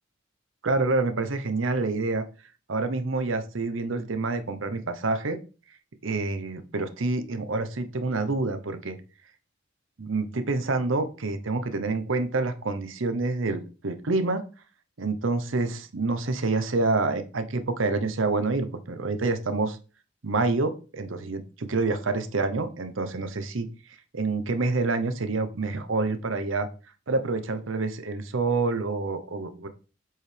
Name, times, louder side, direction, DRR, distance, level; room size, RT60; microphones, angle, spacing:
voice 1, 0.6-2.2 2.7-5.4 6.0-9.0 10.0-14.4 15.0-19.8 20.2-23.7 24.1-26.7 27.1-29.7, right 3 dB, 80° right, 9 dB, 0.8 m, -27 dB
7.6 x 4.8 x 3.4 m, 0.34 s
head